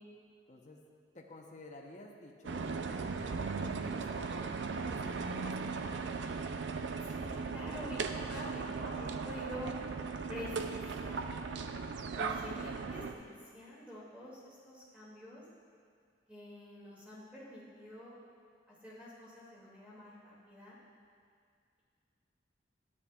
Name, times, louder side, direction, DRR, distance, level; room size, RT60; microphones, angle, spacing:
voice 1, 0.5-0.8 1.1-4.3 4.9-5.7, left 2 dB, 40° left, 0 dB, 0.8 m, -53 dB
sound 1, 2.4-13.1, right 4 dB, 70° right, 0.4 m, -37 dB
voice 2, 7.0-9.7 10.3-11.4 12.2-15.4 16.3-18.2 18.7-20.8, left 1 dB, 10° right, -8 dB, 2.4 m, -47 dB
12.5 x 9.8 x 2.4 m, 2.2 s
head